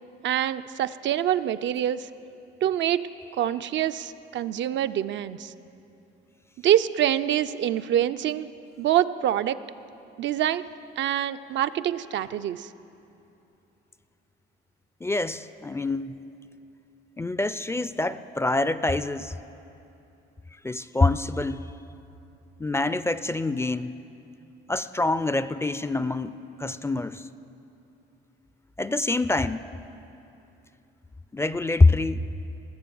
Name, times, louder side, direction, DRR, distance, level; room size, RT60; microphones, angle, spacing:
voice 1, 0.2-2.1 2.6-3.1 3.4-5.5 6.6-8.5 8.8-9.6 10.2-10.7 11.0-12.7, right 11 dB, 70° right, 11 dB, 0.4 m, -25 dB
voice 2, 15.0-16.2 17.2-19.3 20.6-21.7 22.6-23.9 24.7-27.3 28.8-29.6 31.3-32.3, left 2 dB, 15° left, 14 dB, 0.3 m, -25 dB
19.5 x 7.1 x 7.0 m, 2.8 s
cardioid pair, 90°, 20 cm